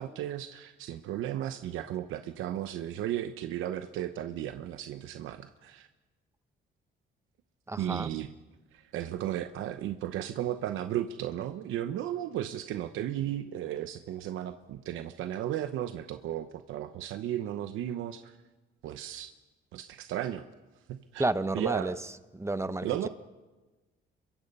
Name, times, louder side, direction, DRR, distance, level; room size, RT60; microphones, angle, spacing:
voice 1, 0.0-5.9 7.8-8.3 8.7-18.4 18.8-19.3 19.7-20.5 20.9-21.2 21.5-22.0 22.8-23.1, right 12 dB, 90° right, 9 dB, 0.9 m, -35 dB
voice 2, 7.7-8.2 21.2-22.1 22.3-23.1, right 2 dB, 15° right, 12 dB, 1.0 m, -31 dB
27.0 x 23.0 x 5.5 m, 1.2 s
cardioid pair, 90°, 20 cm